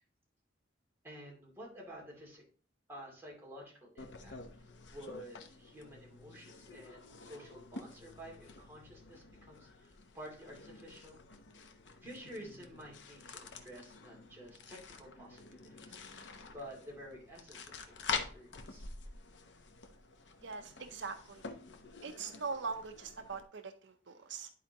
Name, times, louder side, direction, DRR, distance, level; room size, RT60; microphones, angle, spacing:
voice 1, 1.0-2.4 2.9-11.2 12.0-16.0 16.5-18.9, equal, 15° right, -3 dB, 2.4 m, -51 dB
sound 1, 4.0-23.4, left 5 dB, 75° left, 0.8 m, -47 dB
voice 2, 20.4-21.5 22.0-24.5, right 5 dB, 75° right, 8 dB, 0.6 m, -42 dB
11.0 x 4.4 x 2.9 m, 0.42 s
head